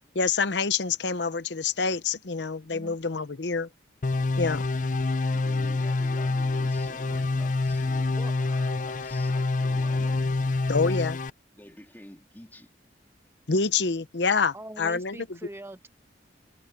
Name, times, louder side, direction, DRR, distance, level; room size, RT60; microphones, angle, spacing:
voice 1, 0.1-3.7 4.4-4.6 10.7-11.2 13.5-15.2, left 4 dB, 70° left, 0.9 m, -26 dB
sound 1, 4.0-11.3, left 3 dB, 45° left, 0.6 m, -26 dB
voice 2, 5.3-10.2 11.5-12.7, left 1 dB, 10° left, 2.7 m, -49 dB
voice 3, 14.5-15.9, right 1 dB, 15° right, 1.2 m, -42 dB
head